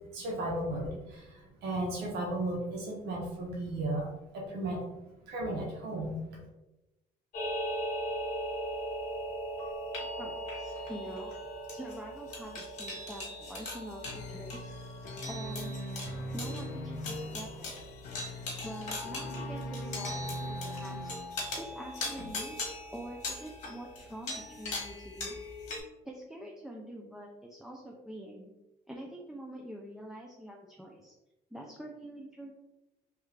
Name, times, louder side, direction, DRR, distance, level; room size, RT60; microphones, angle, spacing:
voice 1, 0.1-4.1 4.3-4.8 5.3-6.4, right 1 dB, 75° right, -3 dB, 0.8 m, -35 dB
sound 1, 7.3-25.8, left 1 dB, 45° left, 1.2 m, -39 dB
voice 2, 10.2-11.3 11.7-14.7 15.3-15.7 16.3-17.7 18.6-21.1 21.5-22.6 22.9-25.4 26.0-28.5 28.9-31.1 31.5-32.5, right 1 dB, 5° right, -1 dB, 0.4 m, -45 dB
sound 2, 14.0-21.7, equal, 80° left, 0.5 m, -41 dB
3.2 x 2.3 x 3.2 m, 0.98 s
cardioid pair, 110°, 17 cm